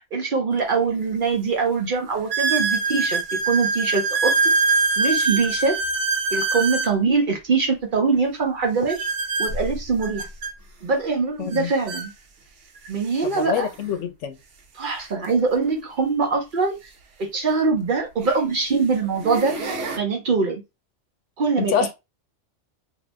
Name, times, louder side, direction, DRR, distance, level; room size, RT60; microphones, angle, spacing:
voice 1, 0.1-4.5 5.0-5.8 6.3-9.1 9.4-10.3 10.8-12.1 12.9-13.7 14.7-16.9 17.2-19.6 20.0-20.6 21.4-21.9, right 4 dB, 50° right, 0.7 m, -23 dB
sound 1, 0.6-0.7 1.3-1.4 2.3-7.0 8.9-10.5 11.5-11.6 11.9-12.1 12.9-13.0 15.2-15.3 17.3-17.4 18.2-18.5 19.0-20.0, right 3 dB, 75° right, 1.1 m, -24 dB
voice 2, 11.4-11.7 13.2-14.4 21.6-21.9, left 9 dB, 75° left, 0.9 m, -26 dB
2.6 x 2.6 x 3.2 m
omnidirectional pair, 1.3 m